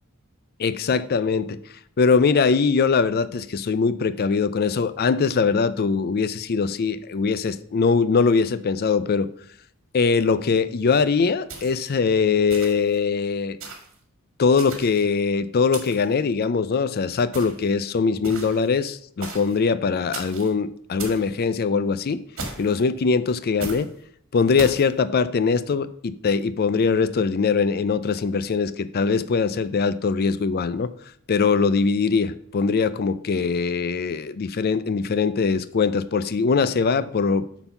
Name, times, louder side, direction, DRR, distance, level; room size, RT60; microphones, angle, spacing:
voice 1, 0.6-1.6 2.0-9.3 9.9-13.6 14.4-22.2 22.6-23.9 24.3-30.9 31.3-37.4, left 5 dB, 45° left, 14 dB, 0.4 m, -22 dB
sound 1, 11.5-12.0 12.5-12.9 13.6-14.0 14.6-15.1 15.7-16.1 17.3-17.7 18.2-18.7 19.2-19.6 20.1-20.5 21.0-21.3 22.4-22.8 23.6-23.9 24.6-24.9, right 3 dB, 65° right, 1.8 m, -36 dB
8.0 x 4.0 x 5.8 m, 0.64 s
head